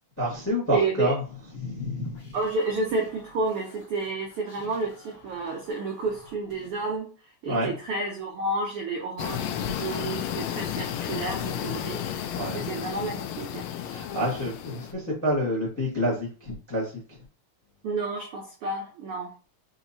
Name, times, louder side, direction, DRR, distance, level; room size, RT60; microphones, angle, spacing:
voice 1, 0.2-1.2 1.5-2.4 7.5-7.7 12.3-12.6 13.8-17.2, equal, 15° left, -4 dB, 0.5 m, -28 dB
voice 2, 0.7-1.1 2.3-7.1 7.4-13.7 17.8-19.3, right 3 dB, 80° right, 0 dB, 1.3 m, -30 dB
sound 1, 2.0-7.0, equal, 35° left, 1.7 m, -52 dB
sound 2, 9.2-14.9, left 10 dB, 80° left, 1.5 m, -32 dB
5.7 x 2.8 x 2.7 m, 0.35 s
omnidirectional pair, 3.4 m